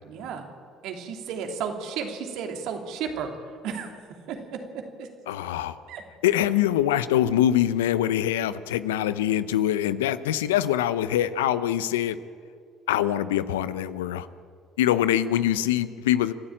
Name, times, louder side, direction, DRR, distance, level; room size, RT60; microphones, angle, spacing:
voice 1, 0.0-0.5 0.8-3.9 4.3-5.1 5.9-6.0, right 6 dB, 70° right, 3 dB, 3.0 m, -33 dB
voice 2, 5.3-5.8 6.2-12.2 12.9-14.3 14.8-16.3, left 11 dB, 85° left, 14 dB, 0.7 m, -24 dB
30.0 x 13.0 x 8.8 m, 2.3 s
hypercardioid pair, 60°, 0 cm